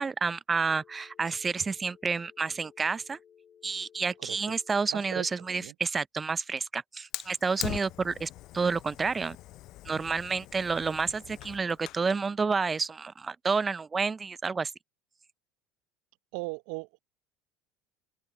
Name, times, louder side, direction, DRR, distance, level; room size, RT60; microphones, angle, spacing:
voice 1, 0.0-3.2 3.6-9.4 9.8-14.7, right 4 dB, 25° right, 0.5 m, -30 dB
Telephone, 0.7-5.7, left 8 dB, 35° left, 2.8 m, -58 dB
voice 2, 4.2-4.6 4.9-5.8 16.3-17.0, right 28 dB, 70° right, 0.6 m, -38 dB
Fire, 7.1-12.1, left 16 dB, 55° left, 0.5 m, -42 dB
open air
hypercardioid pair, 75°, 0 cm